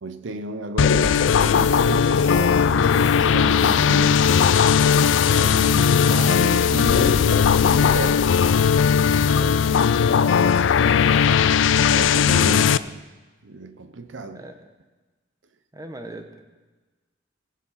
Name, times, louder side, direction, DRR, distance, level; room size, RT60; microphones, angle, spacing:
voice 1, 0.0-4.3 5.2-8.3 8.9-9.7 11.0-13.1 13.4-14.4, right 2 dB, 80° right, 0.7 m, -33 dB
sound 1, 0.8-12.8, left 7 dB, 85° left, 0.4 m, -18 dB
sound 2, 1.3-9.0, left 9 dB, 40° left, 1.2 m, -39 dB
voice 2, 9.5-9.9 14.3-14.7 15.7-16.5, right 1 dB, 20° right, 1.1 m, -40 dB
18.5 x 7.4 x 5.7 m
head